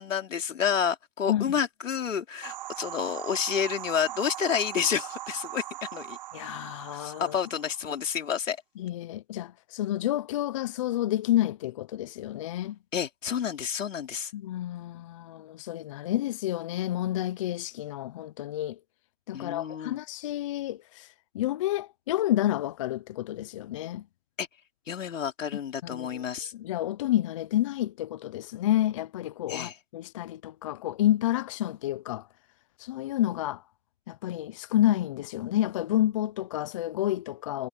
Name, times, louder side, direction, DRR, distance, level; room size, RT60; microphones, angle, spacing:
voice 1, 0.0-6.2 6.9-8.6 12.9-14.3 19.3-20.0 24.4-24.5 24.9-26.5 29.5-29.7, left 7 dB, 70° left, 3.8 m, -30 dB
sound 1, 2.4-8.1, right 14 dB, 35° right, 1.1 m, -40 dB
voice 2, 6.3-7.4 8.8-12.8 14.3-18.8 19.3-24.1 25.8-26.2 26.5-32.3 32.8-33.6 34.1-37.7, left 13 dB, 25° left, 0.7 m, -29 dB
hypercardioid pair, 145°, 40 cm